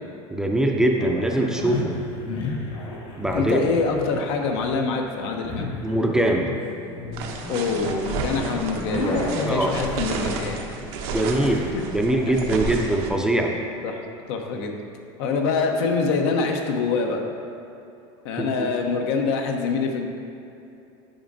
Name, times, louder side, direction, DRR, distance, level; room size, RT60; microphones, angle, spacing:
voice 1, 0.3-1.9 3.2-3.7 5.8-6.5 9.4-9.7 11.1-11.7 11.9-13.5 18.4-18.7, right 1 dB, 5° right, 1 dB, 0.4 m, -22 dB
sound 1, 1.0-13.7, left 2 dB, 40° left, 0.9 m, -33 dB
voice 2, 3.3-5.7 7.5-9.0 9.4-10.6 11.4-11.6 13.8-14.0 14.3-14.7 15.2-17.2 18.2-20.1, left 4 dB, 80° left, 3 dB, 0.7 m, -25 dB
sound 2, 7.1-13.1, right 4 dB, 75° right, 0.7 m, -32 dB
8.8 x 4.9 x 2.6 m, 2.6 s
cardioid pair, 140°, 13 cm